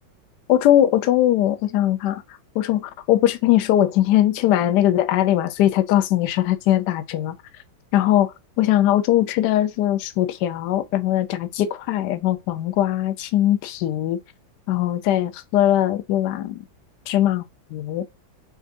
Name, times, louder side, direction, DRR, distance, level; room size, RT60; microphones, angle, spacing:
voice 1, 0.5-2.2 2.6-7.3 7.9-8.3 8.6-14.2 14.7-16.6 17.1-17.4 17.7-18.0, left 12 dB, 75° left, 1.0 m, -20 dB
5.2 x 2.5 x 2.6 m
omnidirectional pair, 2.2 m